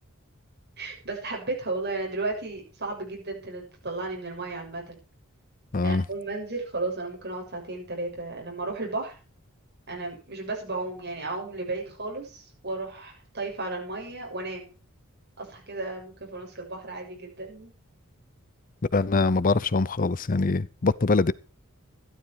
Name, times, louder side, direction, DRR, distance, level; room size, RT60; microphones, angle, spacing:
voice 1, 0.8-5.0 5.8-9.1 9.9-14.7 15.4-17.7, right 2 dB, 50° right, 6.9 m, -34 dB
voice 2, 5.7-6.0 18.9-21.3, left 3 dB, 40° left, 0.6 m, -23 dB
14.0 x 12.5 x 4.8 m
head